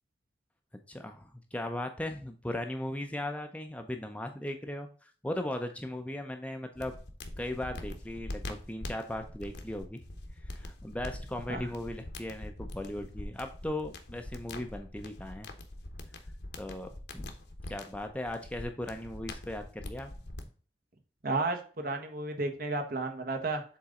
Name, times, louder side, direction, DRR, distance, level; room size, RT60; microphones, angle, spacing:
voice 1, 0.9-6.9 7.4-10.0 10.4-15.5 16.6-17.3 17.7-20.1, left 1 dB, 5° left, 5 dB, 0.6 m, -38 dB
sound 1, 6.7-20.4, left 1 dB, 65° left, 1.1 m, -43 dB
voice 2, 21.2-23.6, right 3 dB, 55° right, 5 dB, 1.2 m, -32 dB
7.1 x 4.0 x 3.7 m, 0.39 s
head